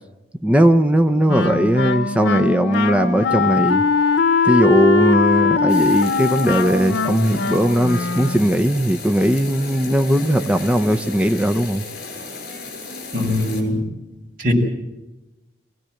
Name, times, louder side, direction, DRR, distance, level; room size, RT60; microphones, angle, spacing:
voice 1, 0.4-3.8 4.4-11.8, equal, 5° right, 6 dB, 0.7 m, -18 dB
Wind instrument woodwind instrument, 1.3-8.6, left 4 dB, 85° left, 0.9 m, -20 dB
sound 1, 5.7-13.6, left 3 dB, 60° left, 6.7 m, -34 dB
voice 2, 13.1-13.8 14.4-14.5, left 1 dB, 50° right, -1 dB, 6.3 m, -21 dB
25.0 x 17.0 x 7.7 m, 1.0 s
head